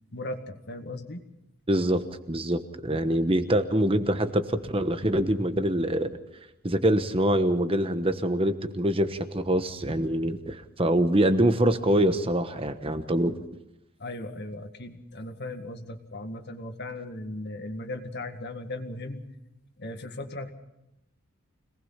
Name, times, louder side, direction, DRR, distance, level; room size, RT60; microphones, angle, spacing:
voice 1, 0.1-1.2 14.0-19.3 19.8-20.5, left 2 dB, 50° left, 7 dB, 1.9 m, -37 dB
voice 2, 1.7-6.2 6.6-13.4, right 1 dB, 25° right, 10 dB, 1.2 m, -25 dB
25.5 x 19.5 x 5.8 m, 0.85 s
head